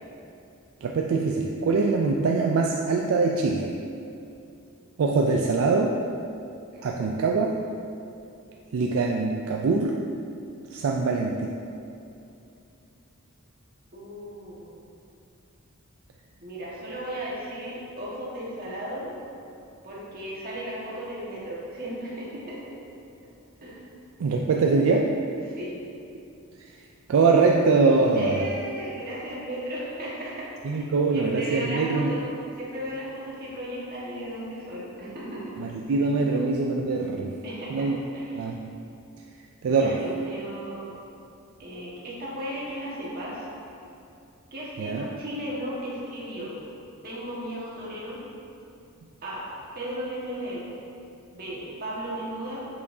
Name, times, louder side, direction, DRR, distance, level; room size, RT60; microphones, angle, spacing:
voice 1, 0.8-3.7 5.0-6.0 6.8-7.6 8.7-10.0 10.7-11.5 24.2-25.2 27.1-28.5 30.6-32.1 35.6-37.3 37.7-38.0 38.3-38.7 39.6-40.0 44.8-45.0, right 4 dB, 70° right, 0 dB, 0.3 m, -23 dB
voice 2, 10.7-11.0 13.9-14.7 16.4-19.1 19.8-22.7 23.6-23.8 25.4-25.8 28.1-35.5 36.2-36.3 37.4-38.5 39.7-40.8 41.6-43.5 44.5-46.6 47.0-48.2 49.2-49.4 49.7-50.7 51.3-52.7, equal, 45° right, -6 dB, 1.4 m, -36 dB
6.9 x 5.2 x 2.7 m, 2.6 s
head